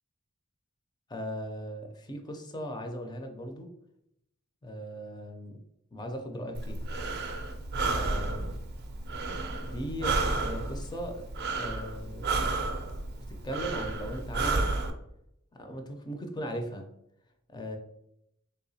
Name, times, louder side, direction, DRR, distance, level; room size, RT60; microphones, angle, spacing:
voice 1, 1.1-3.7 4.6-5.6 5.9-6.9 7.9-8.6 9.3-12.5 13.3-14.7 15.5-16.9 17.5-17.8, equal, 20° left, 4 dB, 0.4 m, -38 dB
Breathing, 6.5-14.9, right 3 dB, 50° right, 0.4 m, -32 dB
3.4 x 2.8 x 2.7 m, 0.79 s
head